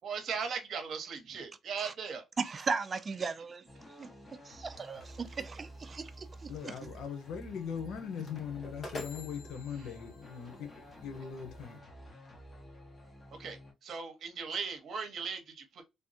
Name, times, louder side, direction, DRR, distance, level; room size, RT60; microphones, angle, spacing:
voice 1, 0.0-2.2 13.3-15.8, right 6 dB, 60° right, 1.0 m, -38 dB
voice 2, 2.4-3.6 4.0-4.1 4.5-6.7, right 4 dB, 35° right, 0.4 m, -37 dB
sound 1, 3.7-13.7, right 1 dB, 15° left, 1.2 m, -51 dB
sound 2, 4.8-11.8, left 2 dB, 40° left, 1.2 m, -50 dB
voice 3, 6.5-11.8, left 7 dB, 80° left, 0.7 m, -40 dB
3.4 x 2.2 x 2.6 m
cardioid pair, 90°, 0 cm